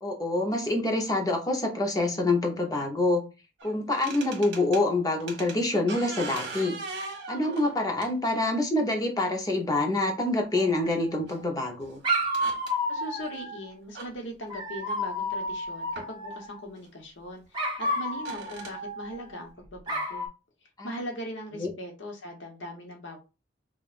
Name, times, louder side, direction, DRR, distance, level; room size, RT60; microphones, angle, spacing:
voice 1, 0.0-3.2 3.6-6.7 7.3-12.0 20.8-21.0 21.6-21.7, left 2 dB, 20° left, 2 dB, 0.8 m, -26 dB
sound 1, 3.6-4.8 5.2-8.4 9.6-9.7 11.3-11.4 11.8-11.9 12.2-12.7 13.9-14.1 16.0-16.1 16.8-16.9 18.1-18.8, right 3 dB, 60° right, 1.4 m, -40 dB
Dog, 10.5-11.4 12.0-13.7 14.5-16.6 17.5-19.4 19.9-20.3, equal, 25° right, 1.0 m, -31 dB
voice 2, 12.9-20.3 20.8-23.2, equal, 75° left, 1 dB, 1.1 m, -40 dB
5.3 x 2.4 x 2.5 m, 0.30 s
head